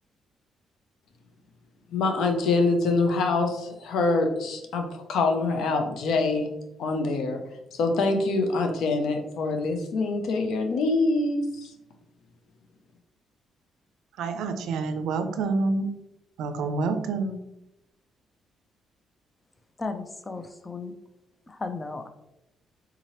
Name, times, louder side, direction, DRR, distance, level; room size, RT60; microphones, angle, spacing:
voice 1, 1.9-6.5 6.8-7.4 7.7-11.7, left 3 dB, 75° left, 4 dB, 0.6 m, -25 dB
voice 2, 14.2-15.9 16.4-17.5, right 3 dB, 85° right, 8 dB, 0.4 m, -28 dB
voice 3, 19.8-20.9 21.5-22.1, left 3 dB, 25° left, 8 dB, 0.4 m, -35 dB
3.7 x 2.8 x 3.0 m, 0.87 s
cardioid pair, 90°, 0 cm